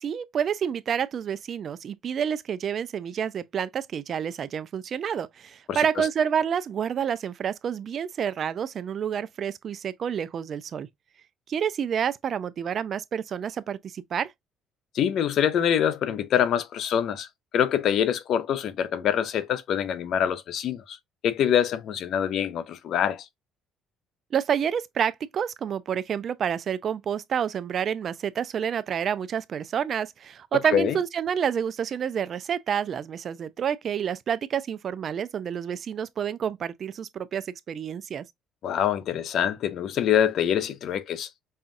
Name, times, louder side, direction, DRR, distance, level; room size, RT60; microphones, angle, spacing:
voice 1, 0.0-10.9 11.5-14.3 24.3-38.2, right 8 dB, 45° right, 0.4 m, -28 dB
voice 2, 5.7-6.1 14.9-17.3 17.5-21.0 21.2-23.3 30.7-31.0 38.6-41.3, left 9 dB, 60° left, 0.5 m, -25 dB
5.4 x 2.3 x 2.6 m
cardioid pair, 110°, 0 cm